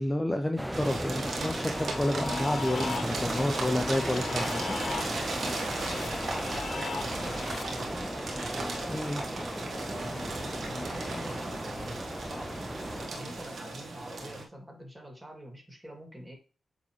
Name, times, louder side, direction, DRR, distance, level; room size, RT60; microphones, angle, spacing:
voice 1, 0.0-4.8 8.9-9.2, left 1 dB, 20° left, 5 dB, 0.8 m, -30 dB
sound 1, 0.6-13.1, equal, ahead, 0.4 m, -37 dB
sound 2, 0.7-14.4, right 2 dB, 70° right, 1.5 m, -36 dB
sound 3, 1.4-7.6, left 6 dB, 65° left, 0.4 m, -40 dB
voice 2, 5.8-12.6 13.1-16.3, equal, 15° right, 1 dB, 2.8 m, -45 dB
8.1 x 3.8 x 3.2 m, 0.36 s
supercardioid pair, 45°, 0 cm